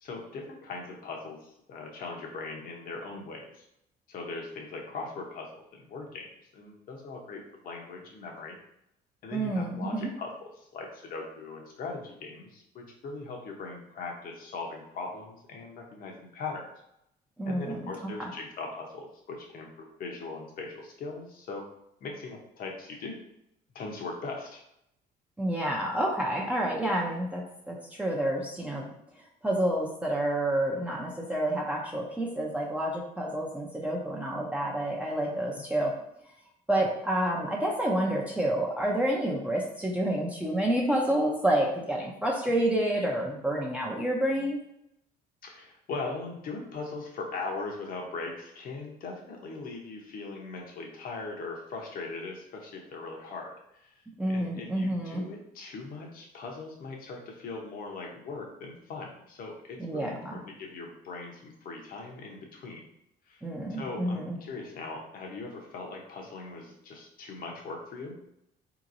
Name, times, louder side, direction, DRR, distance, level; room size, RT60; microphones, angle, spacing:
voice 1, 0.0-3.6 4.1-6.3 6.5-8.6 9.2-16.6 17.5-21.6 22.0-23.2 23.7-24.6 35.3-35.6 42.5-42.6 45.4-53.9 54.3-62.8 63.3-63.4 63.7-68.1, left 3 dB, 60° left, 0 dB, 0.9 m, -40 dB
voice 2, 9.3-10.1 17.4-17.8 18.2-18.3 25.4-28.9 29.4-35.9 36.7-44.6 54.2-55.2 59.8-60.4 63.4-64.4, right 1 dB, 10° right, -3 dB, 0.6 m, -29 dB
3.8 x 2.9 x 2.5 m, 0.78 s
cardioid pair, 110°, 17 cm